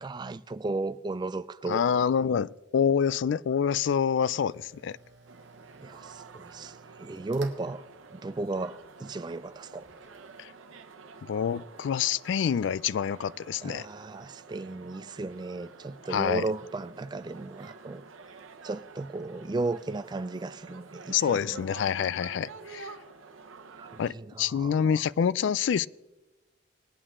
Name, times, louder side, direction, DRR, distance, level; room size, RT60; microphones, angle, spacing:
voice 1, 0.0-1.8 5.8-7.8 8.1-9.9 13.6-18.0 18.6-21.6 23.8-25.0, right 3 dB, 20° right, 0.3 m, -35 dB
voice 2, 1.7-5.0 10.4-10.5 11.3-13.9 16.1-16.4 21.1-22.9 24.0-25.9, left 7 dB, 65° left, 0.3 m, -27 dB
sound 1, 4.5-10.5, right 3 dB, 60° right, 1.5 m, -55 dB
sound 2, 5.3-24.1, right 4 dB, 85° right, 0.9 m, -49 dB
20.0 x 8.7 x 3.7 m
head